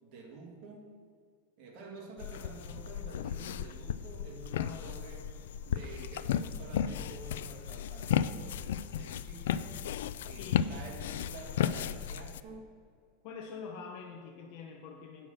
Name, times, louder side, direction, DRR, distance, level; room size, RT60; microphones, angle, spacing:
voice 1, 0.0-0.9 1.6-9.8 10.2-12.8, right 3 dB, 40° right, -1 dB, 2.2 m, -49 dB
sound 1, 2.2-12.4, left 9 dB, 80° left, 0.4 m, -34 dB
voice 2, 4.5-5.0 10.4-10.6 13.2-15.3, left 5 dB, 45° left, 1 dB, 0.9 m, -45 dB
8.9 x 6.2 x 6.5 m, 2.2 s
supercardioid pair, 160°, 0 cm